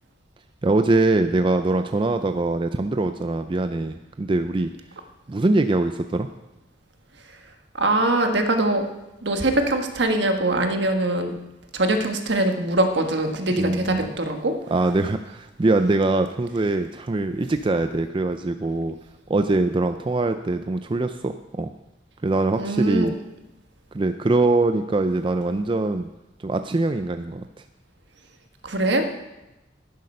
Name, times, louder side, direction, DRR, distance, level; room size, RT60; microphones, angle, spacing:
voice 1, 0.6-4.7 5.3-6.3 13.6-14.1 14.7-19.0 19.3-21.7 22.2-23.1 23.9-26.1 26.4-27.4, right 2 dB, 25° right, 8 dB, 0.4 m, -23 dB
voice 2, 7.8-8.8 9.2-11.3 11.7-14.5 22.6-23.1 28.6-29.1, right 2 dB, 70° right, 5 dB, 1.4 m, -22 dB
11.0 x 10.5 x 5.5 m, 0.98 s
head